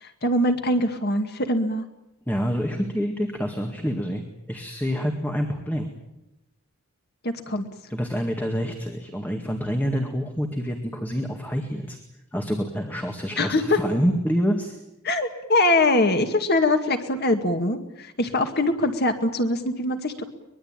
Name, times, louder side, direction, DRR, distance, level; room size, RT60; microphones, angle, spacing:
voice 1, 0.0-1.8 7.2-7.7 13.4-13.8 15.0-20.2, left 2 dB, 45° left, 6 dB, 2.0 m, -23 dB
voice 2, 2.3-4.2 4.5-5.9 7.9-12.0 12.3-14.8, equal, 10° left, 3 dB, 2.0 m, -27 dB
23.5 x 22.0 x 9.0 m, 0.89 s
head